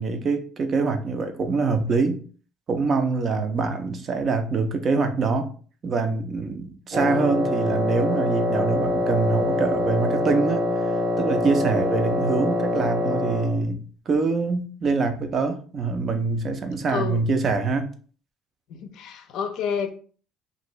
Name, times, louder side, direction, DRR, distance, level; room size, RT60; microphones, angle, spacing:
voice 1, 0.0-2.2 2.7-5.5 5.8-10.7 11.2-17.9, right 4 dB, 35° right, 0.4 m, -24 dB
Wind instrument woodwind instrument, 6.9-13.6, left 1 dB, 65° right, 1.2 m, -24 dB
voice 2, 16.9-17.2 18.7-19.9, left 7 dB, 65° left, 0.5 m, -29 dB
2.6 x 2.5 x 3.0 m
cardioid pair, 120°, 0 cm